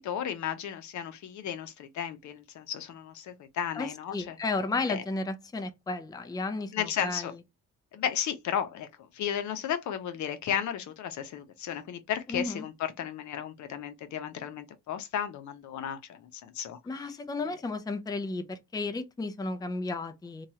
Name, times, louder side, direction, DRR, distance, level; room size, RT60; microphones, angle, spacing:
voice 1, 0.0-4.3 4.9-5.0 6.7-7.3 7.9-16.8, left 9 dB, 70° left, 0.7 m, -34 dB
voice 2, 3.7-7.3 12.3-12.6 16.9-20.5, left 3 dB, 15° left, 0.5 m, -33 dB
2.9 x 2.3 x 2.8 m
cardioid pair, 90°, 30 cm